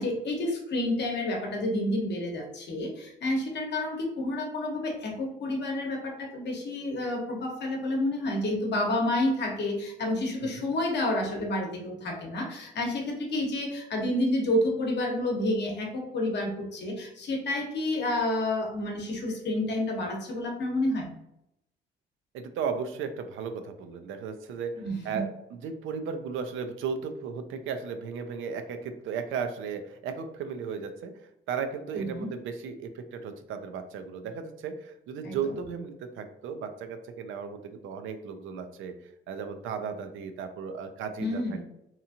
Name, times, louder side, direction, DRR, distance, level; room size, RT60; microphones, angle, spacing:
voice 1, 0.0-21.1 24.8-25.2 31.9-32.3 35.2-35.4 41.2-41.6, left 1 dB, 60° left, 1 dB, 0.9 m, -29 dB
voice 2, 22.3-31.1 31.5-38.9 39.3-41.6, right 6 dB, 80° right, 8 dB, 0.4 m, -35 dB
2.8 x 2.4 x 2.7 m, 0.84 s
cardioid pair, 90°, 20 cm